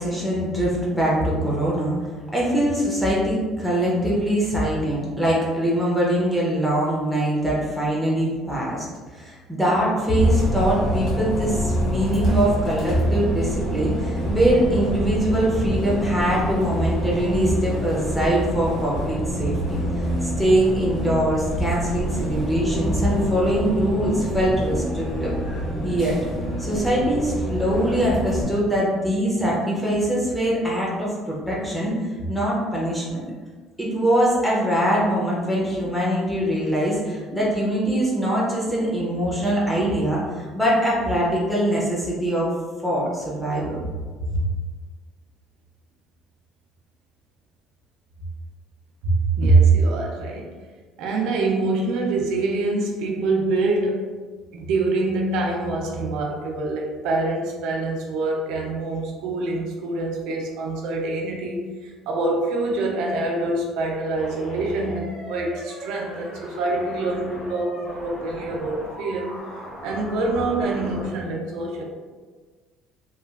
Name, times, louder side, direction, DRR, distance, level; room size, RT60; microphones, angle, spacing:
voice 1, 0.0-2.0 2.3-8.9 9.1-25.3 25.8-26.2 26.6-31.9 32.3-33.2 33.8-42.5 42.8-43.7, right 1 dB, 5° left, -6 dB, 0.6 m, -23 dB
Bus, 10.2-28.4, equal, 40° left, 1.2 m, -26 dB
voice 2, 49.0-50.5 51.0-54.1 54.5-69.3 69.8-71.8, right 3 dB, 75° right, 1 dB, 0.5 m, -24 dB
sound 1, 64.1-71.1, equal, 60° left, 1.2 m, -39 dB
3.0 x 2.3 x 2.3 m, 1.4 s
cardioid pair, 170°, 0 cm